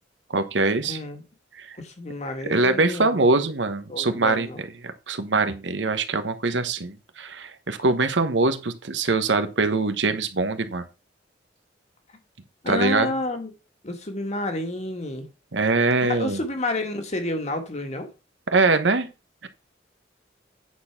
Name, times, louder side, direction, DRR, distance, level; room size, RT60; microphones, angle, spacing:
voice 1, 0.3-1.0 1.6-1.7 2.5-10.8 12.7-13.1 15.5-16.4 18.5-19.1 19.4-19.5, right 3 dB, 90° right, 1.1 m, -23 dB
voice 2, 0.9-1.2 1.8-3.2 3.9-4.6 12.6-13.5 13.8-15.3 16.0-18.1, left 2 dB, 40° left, 1.6 m, -30 dB
9.4 x 4.3 x 5.8 m
head